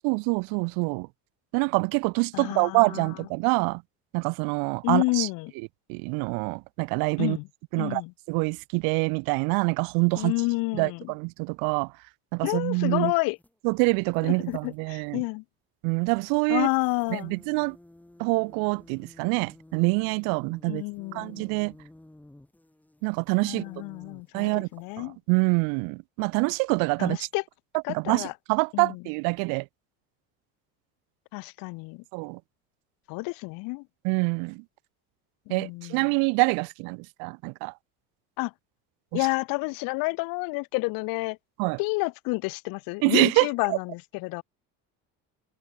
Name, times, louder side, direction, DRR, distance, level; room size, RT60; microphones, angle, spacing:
voice 1, 0.0-1.1 1.5-3.8 4.1-5.3 5.6-7.4 7.7-8.0 8.3-10.3 10.7-11.9 12.3-13.1 13.6-15.2 15.8-16.7 17.1-17.8 18.2-20.8 21.1-21.7 23.0-23.6 24.3-24.7 25.0-27.3 27.9-29.7 32.1-32.4 34.0-34.6 35.5-37.7 39.1-39.3 41.6-41.8 43.0-43.8, right 34 dB, 90° right, 1.9 m, -26 dB
voice 2, 2.3-3.0 4.8-5.5 7.2-7.4 7.8-8.1 10.2-11.0 12.4-13.4 14.2-15.4 16.5-17.3 20.7-21.4 23.4-25.2 27.0-27.4 27.8-28.3 28.7-28.9 31.3-32.0 33.1-33.8 35.5-36.1 38.4-38.5 39.1-41.4 41.8-44.4, left 26 dB, 75° left, 2.1 m, -29 dB
sound 1, 13.4-13.5 14.1-14.8 16.5-25.0, left 1 dB, 5° left, 7.2 m, -53 dB
cardioid pair, 160°, 34 cm